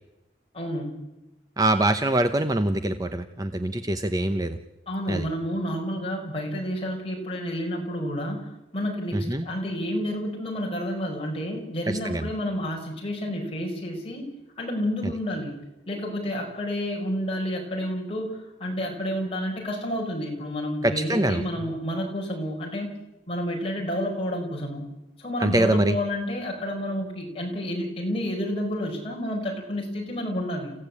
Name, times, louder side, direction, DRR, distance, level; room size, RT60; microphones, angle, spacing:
voice 1, 0.5-1.0 4.9-14.3 14.6-15.6 15.9-22.9 23.3-24.9 25.2-30.7, equal, 30° left, 0 dB, 5.2 m, -30 dB
voice 2, 1.6-4.6 5.1-5.3 9.1-9.5 11.9-12.3 20.8-21.4 25.4-26.0, right 1 dB, 20° right, 8 dB, 0.8 m, -24 dB
29.5 x 15.5 x 8.5 m, 0.97 s
head